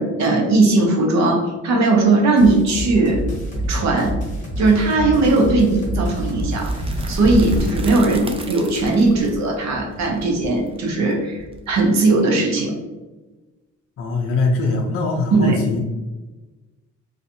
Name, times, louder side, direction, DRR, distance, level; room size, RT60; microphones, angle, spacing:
voice 1, 0.0-3.2 3.7-4.2 4.6-6.8 7.1-12.7 15.3-15.6, right 3 dB, 65° right, 2 dB, 0.7 m, -18 dB
sound 1, 2.4-7.9, right 1 dB, 25° left, 1.0 m, -27 dB
sound 2, 6.4-12.2, right 1 dB, 20° right, 0.3 m, -30 dB
voice 2, 14.0-15.8, left 3 dB, 45° left, 0 dB, 0.4 m, -22 dB
2.5 x 2.3 x 2.6 m, 1.2 s
cardioid pair, 90°, 30 cm